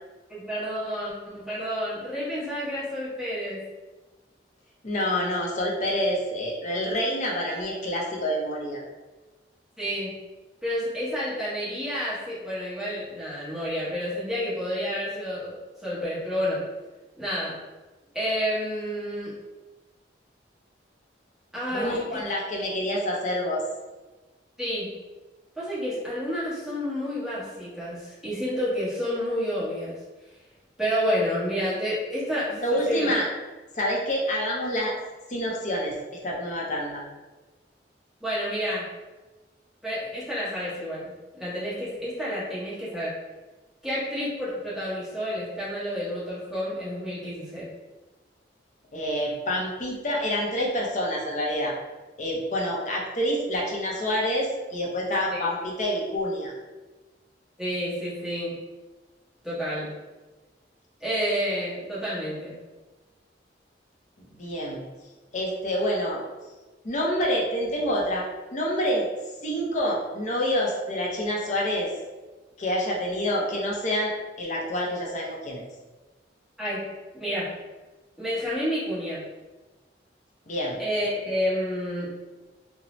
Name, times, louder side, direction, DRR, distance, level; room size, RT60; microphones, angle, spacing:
voice 1, 0.3-3.7 9.8-10.2 10.6-16.6 17.2-17.6 18.1-19.4 21.5-22.2 24.6-24.9 25.5-29.9 30.2-30.4 30.8-33.1 38.2-38.9 39.8-43.2 43.8-47.7 55.3-55.4 57.6-58.6 59.4-59.9 61.0-62.6 76.6-76.9 77.1-77.5 78.2-79.2 80.8-82.1, equal, ahead, -10 dB, 1.0 m, -30 dB
voice 2, 4.8-8.8 21.7-23.6 32.6-33.3 33.7-34.9 35.3-37.0 48.9-51.7 52.2-56.5 64.4-64.8 65.3-66.2 66.8-68.3 68.5-69.1 69.4-71.9 72.6-75.6 80.5-80.8, equal, 40° left, -2 dB, 0.5 m, -27 dB
2.6 x 2.0 x 3.0 m, 1.2 s
head